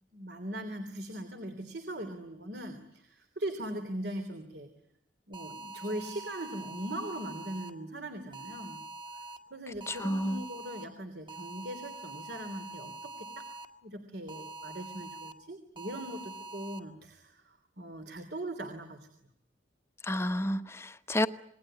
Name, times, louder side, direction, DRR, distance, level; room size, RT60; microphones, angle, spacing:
voice 1, 0.1-4.7 5.3-8.8 9.5-13.4 13.8-19.1, right 1 dB, 60° right, 7 dB, 3.1 m, -40 dB
sound 1, 5.3-7.7 8.3-9.4 9.8-10.9 11.3-13.6 14.3-15.3 15.8-16.8, right 2 dB, 25° right, 1.9 m, -44 dB
voice 2, 9.9-10.4 20.0-21.3, left 1 dB, 15° left, 10 dB, 1.1 m, -30 dB
27.5 x 21.0 x 10.0 m, 0.74 s
head